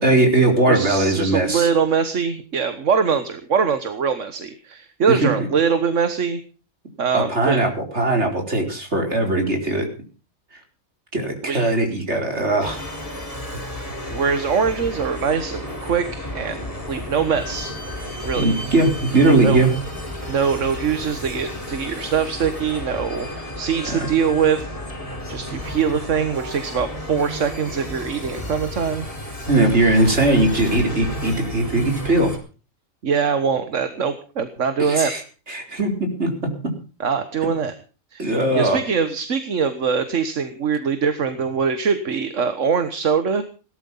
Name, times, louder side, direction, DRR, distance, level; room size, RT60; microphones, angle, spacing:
voice 1, 0.0-1.7 5.1-5.3 7.1-9.9 11.1-12.8 18.4-19.7 23.8-24.1 29.5-32.3 34.8-35.2 35.5-36.7 38.2-38.8, right 2 dB, 65° right, 3 dB, 4.8 m, -19 dB
voice 2, 0.7-6.4 7.0-7.6 11.5-11.6 13.5-13.6 14.1-17.7 18.2-18.5 19.4-19.6 20.3-24.7 25.3-29.1 33.0-35.1 37.0-37.7 38.1-43.4, right 6 dB, 85° right, 10 dB, 1.7 m, -23 dB
sound 1, 12.6-32.4, left 1 dB, 30° left, 4.6 m, -32 dB
18.0 x 12.5 x 5.6 m, 0.37 s
omnidirectional pair, 1.2 m